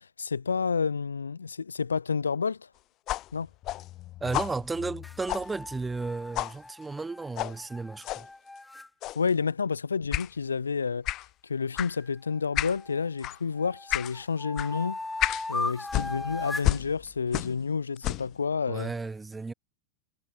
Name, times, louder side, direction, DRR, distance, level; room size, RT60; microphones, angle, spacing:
voice 1, 0.0-2.7 3.3-3.5 9.1-11.1 11.4-15.0 15.5-18.9, left 5 dB, 75° left, 1.3 m, -30 dB
sound 1, 3.1-6.1 6.3-6.6 7.3-7.6 8.0-8.3 9.0-9.3 10.1-10.3 11.0-11.3 11.7-11.9 12.5-12.8 13.2-13.4 13.9-14.1 14.6-14.7 15.2-15.5 15.9-17.7 18.0-18.3, left 16 dB, 35° left, 0.3 m, -32 dB
voice 2, 4.2-8.3 18.7-19.5, right 3 dB, 10° right, 6.4 m, -34 dB
sound 2, 5.0-8.9 11.8-13.1 13.6-16.8, left 2 dB, 5° left, 4.3 m, -38 dB
figure-of-eight pair, 90°, 0 cm